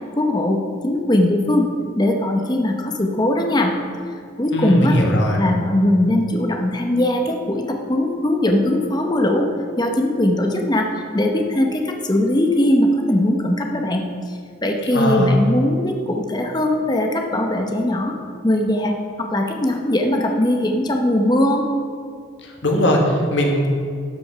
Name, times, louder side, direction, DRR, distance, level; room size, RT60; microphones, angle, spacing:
voice 1, 0.1-1.7 2.0-3.7 4.4-5.0 5.3-9.5 9.8-10.9 11.1-18.2 18.4-21.6, left 1 dB, 20° left, 3 dB, 0.8 m, -20 dB
voice 2, 4.5-5.4 14.9-15.4 22.4-23.7, left 1 dB, 65° left, 1 dB, 1.5 m, -19 dB
12.5 x 5.2 x 5.7 m, 2.2 s
head